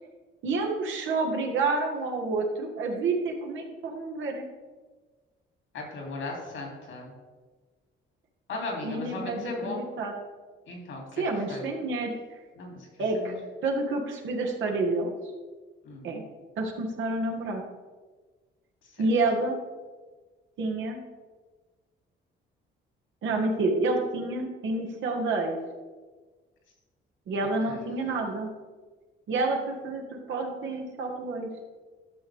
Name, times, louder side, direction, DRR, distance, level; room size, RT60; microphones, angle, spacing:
voice 1, 0.4-4.5 8.8-10.1 11.2-12.2 13.0-13.3 13.6-15.1 16.0-16.2 16.6-17.6 19.0-19.6 20.6-21.0 23.2-25.6 27.3-28.5 29.3-31.5, right 3 dB, 75° right, 1 dB, 1.7 m, -29 dB
voice 2, 5.7-7.1 8.5-9.9 10.7-11.2 11.5-11.6 12.6-12.9 13.1-13.4 15.8-16.1 18.9-19.0 27.4-27.8, left 2 dB, 80° left, -1 dB, 3.1 m, -37 dB
12.0 x 6.3 x 3.6 m, 1.4 s
cardioid pair, 90°, 20 cm